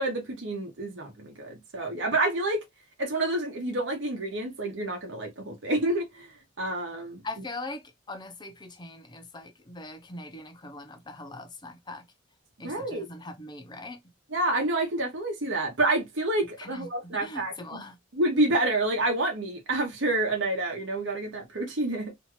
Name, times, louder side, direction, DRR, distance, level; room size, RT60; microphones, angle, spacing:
voice 1, 0.0-2.6 3.0-7.2 12.6-13.1 14.3-17.8 18.1-22.1, right 2 dB, 65° right, 1.0 m, -28 dB
voice 2, 7.2-12.1 12.6-14.0 16.6-16.9 17.1-18.0, left 2 dB, 20° left, 0.6 m, -41 dB
2.8 x 2.4 x 3.0 m
head